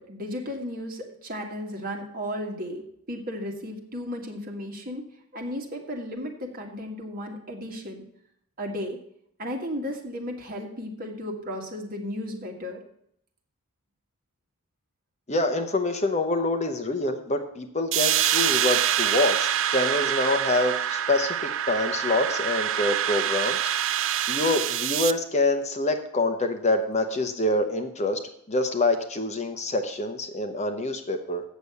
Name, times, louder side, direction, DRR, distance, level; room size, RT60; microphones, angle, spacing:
voice 1, 0.0-5.0 5.3-8.0 8.6-9.0 9.4-12.8, equal, 40° right, 1 dB, 1.9 m, -34 dB
voice 2, 15.3-23.6 24.3-28.2 28.5-31.4, left 2 dB, 30° left, 6 dB, 0.8 m, -26 dB
sound 1, 17.9-25.1, right 10 dB, 60° right, 0.5 m, -25 dB
8.2 x 6.9 x 8.1 m, 0.71 s
head